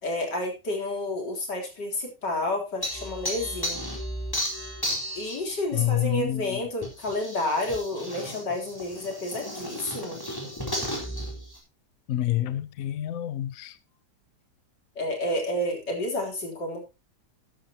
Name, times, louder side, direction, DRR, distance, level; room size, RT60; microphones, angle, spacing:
voice 1, 0.0-3.9 5.1-10.2 15.0-16.8, left 1 dB, 85° left, 4.4 m, -30 dB
sound 1, 2.8-5.5 6.8-11.6, equal, 10° left, 4.1 m, -34 dB
voice 2, 5.7-6.6 12.1-13.8, left 13 dB, 60° left, 1.1 m, -28 dB
13.5 x 11.5 x 2.9 m
omnidirectional pair, 1.8 m